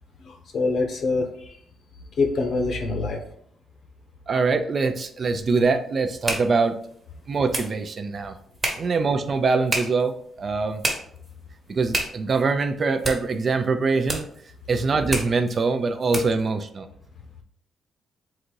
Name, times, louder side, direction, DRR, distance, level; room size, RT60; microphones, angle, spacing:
voice 1, 0.2-1.6 2.2-3.2, left 3 dB, 60° left, 4 dB, 0.8 m, -25 dB
voice 2, 4.3-6.7 7.3-8.3 8.7-10.8 11.7-14.3 14.7-16.9, right 4 dB, 40° right, 8 dB, 0.4 m, -23 dB
sound 1, 4.9-16.5, right 2 dB, 20° right, 1.1 m, -33 dB
3.9 x 2.6 x 4.5 m, 0.65 s
cardioid pair, 130°, 0 cm